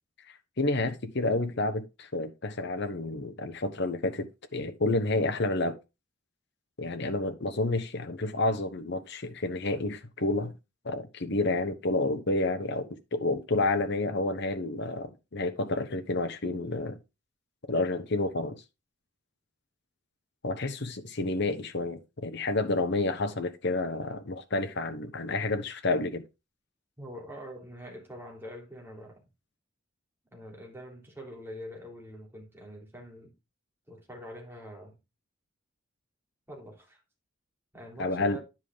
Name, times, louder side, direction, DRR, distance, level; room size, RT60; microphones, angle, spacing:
voice 1, 0.6-5.7 6.8-10.6 10.8-17.0 17.7-18.6 20.4-26.2 38.0-38.4, left 2 dB, 60° left, 1.1 m, -30 dB
voice 2, 27.0-29.3 30.3-33.3 33.9-34.9 36.5-37.0 37.7-38.4, equal, 10° right, 3.3 m, -44 dB
10.5 x 5.1 x 3.7 m
head